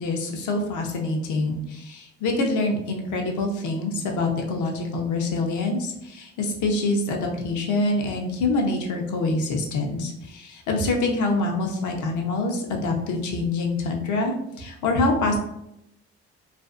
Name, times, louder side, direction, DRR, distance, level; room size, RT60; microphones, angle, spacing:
voice 1, 0.0-15.4, left 2 dB, 75° left, 2 dB, 0.7 m, -25 dB
2.5 x 2.4 x 2.4 m, 0.83 s
cardioid pair, 90°, 30 cm